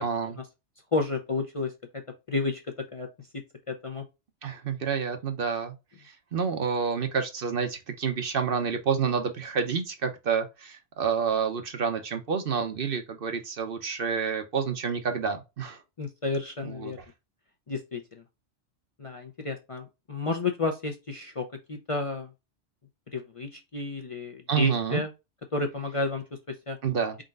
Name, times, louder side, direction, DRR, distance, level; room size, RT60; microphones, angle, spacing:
voice 1, 0.0-0.4 4.4-5.7 6.0-15.8 16.6-16.9 24.5-25.0 26.8-27.2, right 6 dB, 55° right, 0.9 m, -29 dB
voice 2, 0.9-1.7 2.3-2.6 2.9-3.1 3.3-4.0 16.0-17.0 17.7-18.2 19.0-22.3 23.1-25.1 25.5-26.8, left 3 dB, 35° left, 0.6 m, -31 dB
4.3 x 3.9 x 2.5 m
omnidirectional pair, 1.2 m